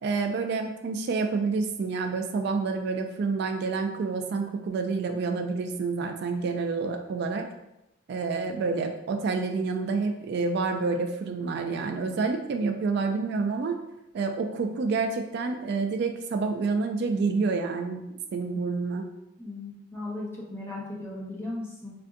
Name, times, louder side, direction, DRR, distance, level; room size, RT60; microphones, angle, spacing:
voice 1, 0.0-7.5 8.1-13.8 14.1-18.0 18.3-19.1, right 4 dB, 60° right, 5 dB, 0.3 m, -28 dB
voice 2, 19.4-21.9, left 2 dB, 15° left, -6 dB, 0.9 m, -37 dB
4.3 x 2.5 x 2.5 m, 0.91 s
head